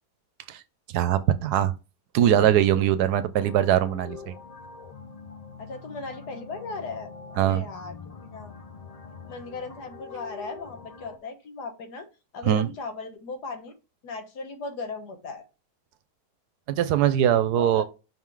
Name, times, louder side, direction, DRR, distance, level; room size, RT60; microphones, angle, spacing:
voice 1, 0.9-1.7 2.1-4.3 7.4-7.6 12.5-12.7 16.7-17.9, right 11 dB, 80° right, 1.1 m, -21 dB
sound 1, 3.3-11.2, left 5 dB, 70° left, 0.3 m, -44 dB
voice 2, 5.6-7.1 7.3-8.5 9.3-12.1 12.3-13.7 14.0-15.4 17.5-17.9, left 3 dB, 85° left, 1.6 m, -37 dB
5.6 x 3.8 x 4.6 m
omnidirectional pair, 1.7 m